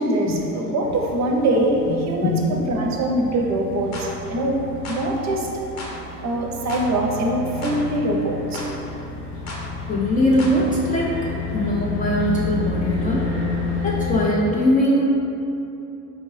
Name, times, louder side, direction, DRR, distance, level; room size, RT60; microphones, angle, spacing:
voice 1, 0.0-4.6 4.9-5.5 6.2-8.6, right 1 dB, 35° right, 0 dB, 0.6 m, -23 dB
sound 1, 0.8-14.2, left 3 dB, 75° left, 1.1 m, -30 dB
voice 2, 1.9-2.5 9.9-11.1 11.5-13.2 13.8-15.0, equal, 20° left, -5 dB, 0.4 m, -21 dB
sound 2, 3.9-4.1 4.8-5.0 5.8-6.0 6.7-6.9 7.6-7.8 8.5-8.7 9.5-9.6 10.4-10.6, left 2 dB, 35° left, 0.9 m, -34 dB
4.6 x 2.6 x 3.1 m, 2.9 s
hypercardioid pair, 70°, 46 cm